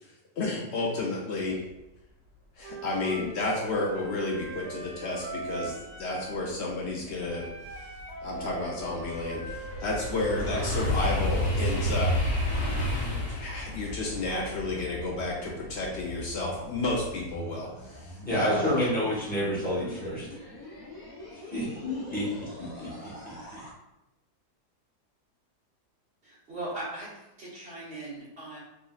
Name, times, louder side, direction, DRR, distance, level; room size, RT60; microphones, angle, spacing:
voice 1, 0.0-1.6 2.6-7.5 7.8-7.9 8.2-12.1 13.3-18.8, left 2 dB, 90° left, -2 dB, 0.5 m, -31 dB
Wind instrument woodwind instrument, 2.6-6.4 7.3-10.9, right 3 dB, 90° right, 1.2 m, -41 dB
sound 1, 6.8-6.9 7.4-16.4 16.9-17.2, left 1 dB, 60° left, 1.0 m, -30 dB
sound 2, 14.1-23.7, left 1 dB, 35° left, 0.7 m, -45 dB
voice 2, 18.2-20.3 21.5-22.3 22.6-23.6, equal, 5° left, -9 dB, 1.0 m, -29 dB
voice 3, 26.2-27.1 27.4-28.6, right 2 dB, 40° right, -10 dB, 1.6 m, -38 dB
3.7 x 3.0 x 2.3 m, 0.95 s
omnidirectional pair, 1.7 m